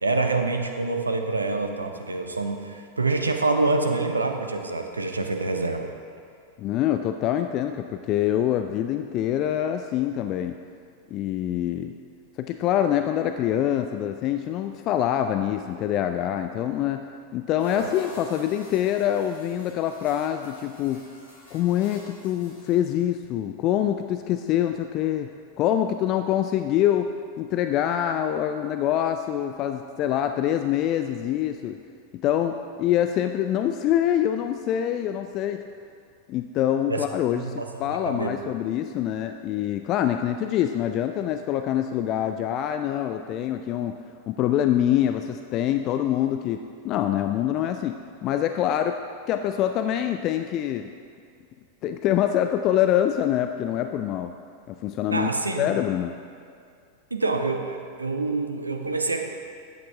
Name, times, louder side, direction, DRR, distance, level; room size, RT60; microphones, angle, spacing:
voice 1, 0.0-5.9 36.9-37.0 37.3-37.6 38.0-38.3 55.1-55.7 57.1-59.2, right 3 dB, 80° right, 5 dB, 0.7 m, -26 dB
voice 2, 6.6-10.6 11.1-11.9 12.4-17.1 17.3-21.0 21.5-25.3 25.6-31.8 32.1-35.6 36.3-37.5 37.8-43.9 44.3-49.0 49.3-50.9 51.8-54.3 54.7-55.3 55.6-56.1, left 11 dB, 35° left, 7 dB, 0.4 m, -25 dB
sound 1, 17.6-23.0, left 1 dB, 70° left, 2.7 m, -43 dB
12.0 x 8.6 x 3.4 m, 2.3 s
figure-of-eight pair, 90°, 0 cm